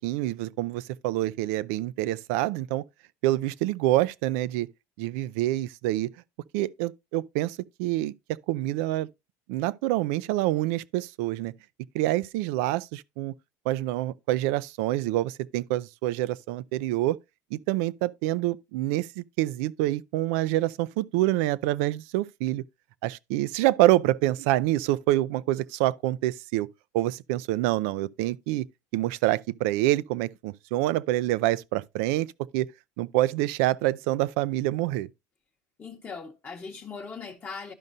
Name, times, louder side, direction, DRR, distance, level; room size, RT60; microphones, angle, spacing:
voice 1, 0.0-2.8 3.2-4.7 5.0-6.1 6.5-8.1 8.5-9.1 9.5-11.5 11.9-13.3 13.7-17.2 17.5-22.6 23.0-26.7 26.9-28.7 28.9-32.3 32.5-32.7 33.0-35.1, right 16 dB, 85° right, 0.4 m, -26 dB
voice 2, 35.8-37.7, left 5 dB, 25° left, 0.8 m, -39 dB
12.5 x 5.4 x 2.5 m
cardioid pair, 130°, 7 cm